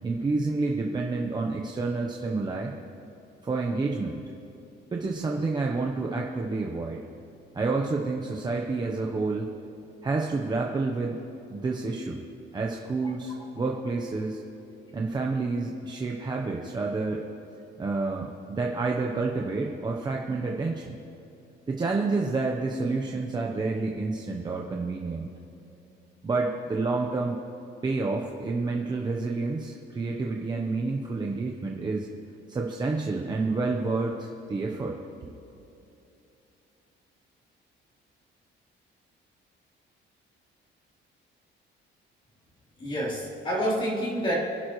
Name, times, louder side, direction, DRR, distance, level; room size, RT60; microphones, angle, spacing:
voice 1, 0.0-2.7 3.4-4.2 4.9-7.0 7.5-9.5 10.0-11.2 11.5-12.2 12.5-14.4 14.9-17.2 17.8-20.9 21.7-25.3 26.2-27.3 27.8-32.1 32.5-35.3, right 3 dB, 20° right, 0 dB, 0.9 m, -29 dB
voice 2, 42.8-44.5, equal, 25° left, -6 dB, 3.7 m, -28 dB
25.0 x 11.5 x 3.1 m, 2.8 s
cardioid pair, 170°, 20 cm